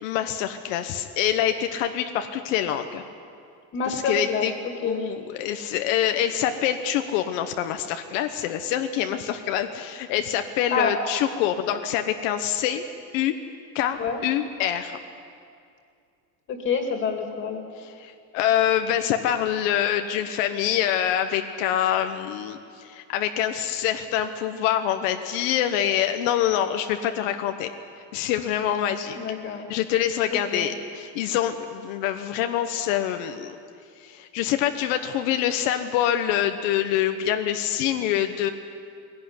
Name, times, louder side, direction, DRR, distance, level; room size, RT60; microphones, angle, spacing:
voice 1, 0.0-3.0 3.9-4.5 4.8-12.8 13.1-13.3 13.7-15.0 17.8-27.7 28.1-29.2 29.7-33.5 34.0-38.5, left 10 dB, 90° left, 7 dB, 1.2 m, -25 dB
voice 2, 3.7-4.5 4.8-5.1 10.7-10.9 14.0-14.2 16.5-17.6 29.2-29.7 30.3-30.7, left 5 dB, 30° left, 4 dB, 2.2 m, -27 dB
21.0 x 17.5 x 9.6 m, 2.4 s
cardioid pair, 180°, 37 cm